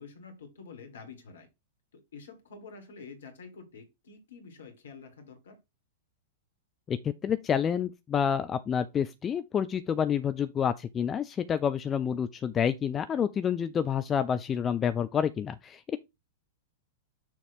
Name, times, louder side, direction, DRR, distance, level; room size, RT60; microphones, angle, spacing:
voice 1, 0.0-1.5 1.9-5.6, left 5 dB, 65° left, 1.9 m, -48 dB
voice 2, 6.9-16.0, left 8 dB, 20° left, 0.4 m, -28 dB
6.8 x 3.0 x 5.5 m
figure-of-eight pair, 100°, 0 cm